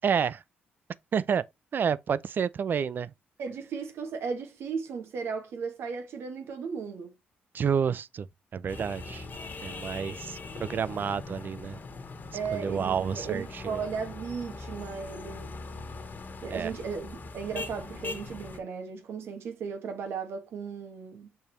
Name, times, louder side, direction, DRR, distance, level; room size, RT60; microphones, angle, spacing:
voice 1, 0.0-0.4 1.1-1.4 1.7-3.1 7.5-8.3 8.5-9.2 9.6-11.8 12.5-13.8 16.5-16.8, right 7 dB, 50° right, 0.5 m, -29 dB
voice 2, 3.4-7.1 12.3-15.6 16.4-21.3, right 5 dB, 75° right, 2.1 m, -36 dB
sound 1, 8.7-18.6, left 3 dB, 45° left, 1.7 m, -41 dB
6.9 x 5.4 x 3.3 m
cardioid pair, 95°, 4 cm